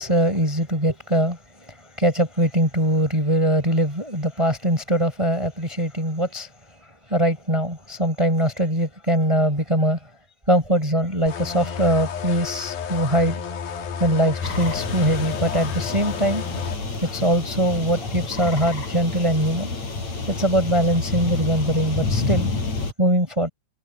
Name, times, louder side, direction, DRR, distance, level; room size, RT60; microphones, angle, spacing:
voice 1, 0.0-6.5 7.1-10.0 10.5-13.4 14.0-16.4 16.8-19.8 20.3-22.5 23.0-23.5, equal, 10° right, 6.0 m, -22 dB
sound 1, 11.3-16.8, left 6 dB, 90° left, 4.2 m, -32 dB
sound 2, 14.4-22.9, left 3 dB, 50° left, 8.0 m, -29 dB
omnidirectional pair, 4.1 m